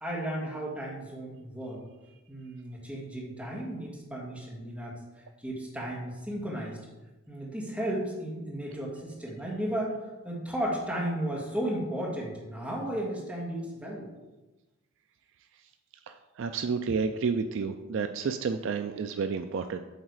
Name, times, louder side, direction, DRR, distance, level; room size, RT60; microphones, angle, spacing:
voice 1, 0.0-1.8 2.3-4.9 5.4-6.8 7.3-9.9 10.2-14.1, right 1 dB, 5° right, -4 dB, 1.6 m, -34 dB
voice 2, 16.1-19.8, right 5 dB, 55° right, 8 dB, 0.3 m, -30 dB
8.1 x 4.0 x 4.8 m, 1.1 s
head